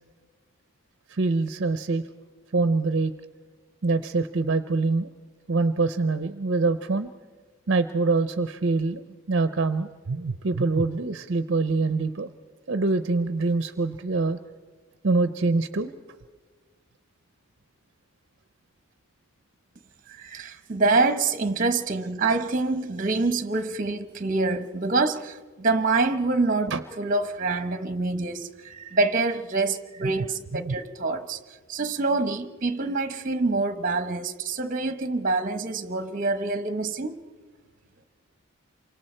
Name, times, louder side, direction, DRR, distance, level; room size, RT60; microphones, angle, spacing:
voice 1, 1.1-2.0 2.5-3.1 3.8-5.1 5.5-7.1 7.7-9.0 9.3-12.3 12.7-14.4 15.0-15.9 26.7-26.8 30.5-30.8, right 3 dB, 55° right, 0.6 m, -24 dB
voice 2, 20.1-31.4 31.7-37.2, right 3 dB, 40° right, 1.0 m, -26 dB
28.0 x 24.5 x 4.4 m
head